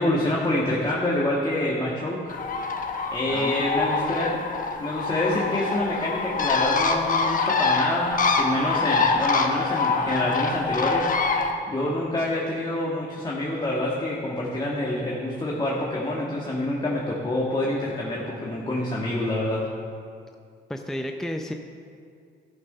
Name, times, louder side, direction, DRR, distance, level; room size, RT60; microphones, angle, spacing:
voice 1, 0.0-2.4 3.1-4.4 4.8-11.4 11.7-19.6, left 1 dB, 20° left, -4 dB, 1.6 m, -27 dB
Bird, 2.3-11.5, left 4 dB, 45° left, 1.0 m, -25 dB
voice 2, 3.3-3.7 20.7-21.5, equal, ahead, 4 dB, 0.6 m, -31 dB
14.0 x 6.2 x 5.5 m, 2.3 s
cardioid pair, 90°, 20 cm